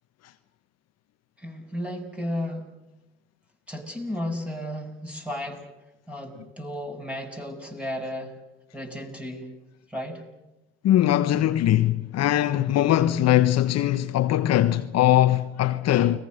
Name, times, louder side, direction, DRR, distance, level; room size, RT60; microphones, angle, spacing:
voice 1, 1.4-2.7 3.7-5.6 6.1-8.3 8.7-9.5 9.9-10.2, left 1 dB, 5° right, 7.7 m, -33 dB
voice 2, 10.8-16.2, left 13 dB, 55° left, 1.2 m, -21 dB
30.0 x 21.0 x 6.6 m
hypercardioid pair, 65°, 31 cm